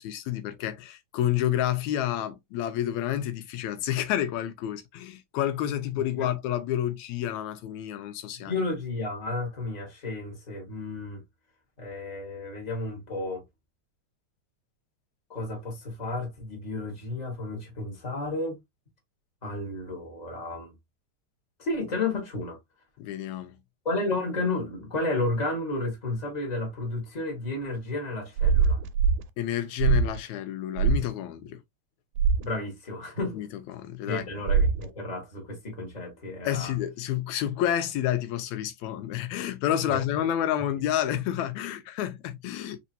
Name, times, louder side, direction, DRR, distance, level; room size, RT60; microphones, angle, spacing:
voice 1, 0.0-8.5 23.0-23.6 29.4-31.6 33.3-34.3 36.5-42.8, left 11 dB, 85° left, 2.1 m, -29 dB
voice 2, 8.4-11.2 11.8-13.4 15.3-18.6 19.4-20.7 21.6-22.6 23.8-28.8 32.4-33.4 34.1-36.7 39.9-40.0, left 2 dB, 20° left, 1.3 m, -32 dB
sound 1, 28.4-29.2 29.8-30.2 30.8-31.1 32.2-32.5 34.5-34.9, right 5 dB, 90° right, 2.0 m, -22 dB
4.2 x 3.7 x 2.6 m
omnidirectional pair, 3.3 m